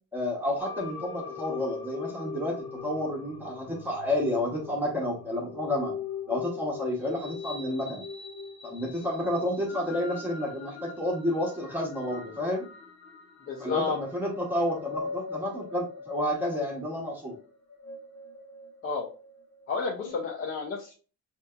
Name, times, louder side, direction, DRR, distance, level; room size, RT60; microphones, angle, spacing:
voice 1, 0.1-5.9 6.3-8.0 8.6-12.7 13.6-17.4, left 1 dB, 5° right, -2 dB, 0.8 m, -30 dB
sound 1, 0.6-20.1, left 5 dB, 90° left, 1.0 m, -41 dB
voice 2, 13.5-14.0 18.8-19.1 19.7-20.9, left 4 dB, 45° left, -1 dB, 0.6 m, -31 dB
5.3 x 2.8 x 2.2 m, 0.36 s
cardioid pair, 175°, 30 cm